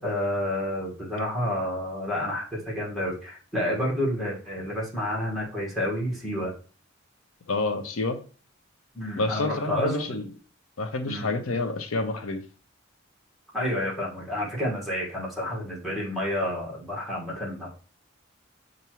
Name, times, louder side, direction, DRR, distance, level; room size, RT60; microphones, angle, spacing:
voice 1, 0.0-6.5 8.9-10.0 11.1-11.3 13.5-17.7, left 1 dB, ahead, 1.5 m, -29 dB
voice 2, 7.5-8.2 9.2-10.3 10.8-12.4, left 2 dB, 80° left, 0.6 m, -28 dB
6.8 x 2.6 x 3.0 m
head